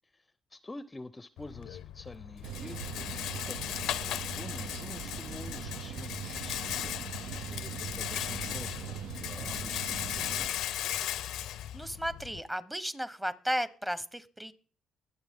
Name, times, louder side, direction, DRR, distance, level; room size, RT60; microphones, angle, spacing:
voice 1, 0.0-7.0 7.5-10.4, left 2 dB, 20° left, 15 dB, 0.6 m, -48 dB
Rattle, 1.4-12.4, left 12 dB, 85° left, 0.5 m, -37 dB
sound 1, 2.4-10.5, right 10 dB, 85° right, 0.5 m, -41 dB
voice 2, 11.7-14.5, equal, 10° right, 14 dB, 1.0 m, -34 dB
22.0 x 8.1 x 3.7 m, 0.42 s
cardioid pair, 90°, 0 cm